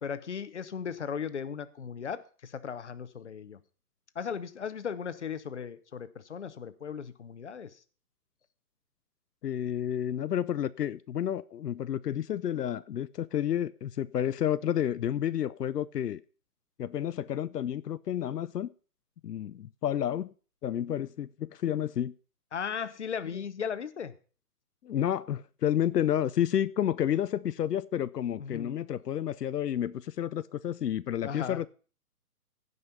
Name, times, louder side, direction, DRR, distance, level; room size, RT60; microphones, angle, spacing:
voice 1, 0.0-3.6 4.1-7.7 22.5-24.1 28.4-28.7 31.2-31.6, left 7 dB, 45° left, 0.8 m, -37 dB
voice 2, 9.4-16.2 16.8-18.7 19.2-20.3 20.6-22.1 24.8-31.7, left 10 dB, 85° left, 0.6 m, -30 dB
16.0 x 5.4 x 5.5 m
hypercardioid pair, 175°, 47 cm